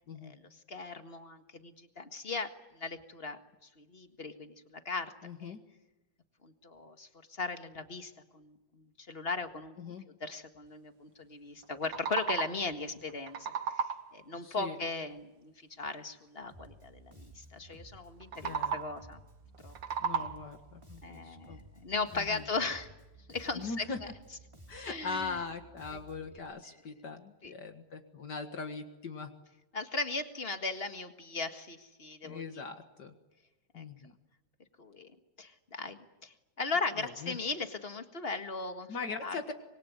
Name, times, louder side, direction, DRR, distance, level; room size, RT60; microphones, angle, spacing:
voice 1, 0.2-5.1 5.4-5.5 6.4-9.7 10.2-13.4 13.7-13.9 14.1-19.2 19.6-19.7 21.0-22.9 23.3-23.9 24.8-25.4 25.9-26.0 27.4-27.5 29.7-32.6 33.7-33.8 34.8-35.1 35.4-39.0 39.2-39.4, left 3 dB, 35° left, 8 dB, 1.9 m, -38 dB
voice 2, 5.2-5.6 9.8-10.0 14.4-14.8 18.4-18.8 20.0-21.6 22.1-22.4 23.6-24.0 24.7-29.3 32.2-33.1 33.7-34.1 37.0-37.4 38.9-39.5, left 4 dB, 65° left, 6 dB, 2.3 m, -40 dB
sound 1, 11.6-12.7 13.1-14.2 18.2-19.1 19.5-20.6, right 7 dB, 80° right, 1.9 m, -35 dB
Bass guitar, 16.5-26.4, right 1 dB, 15° right, 3.0 m, -55 dB
26.0 x 23.0 x 9.6 m, 1.0 s
omnidirectional pair, 2.0 m